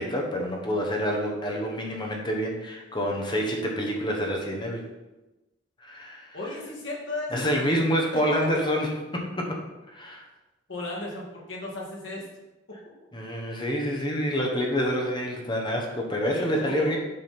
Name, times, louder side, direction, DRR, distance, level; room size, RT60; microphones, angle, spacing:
voice 1, 0.0-4.9 5.8-6.4 7.3-9.6 9.9-10.2 13.1-17.0, equal, 25° left, 0 dB, 1.0 m, -27 dB
voice 2, 6.3-7.7 8.1-8.4 10.7-12.2 16.3-17.0, left 2 dB, 75° left, -3 dB, 2.1 m, -35 dB
7.7 x 3.7 x 5.8 m, 1.0 s
head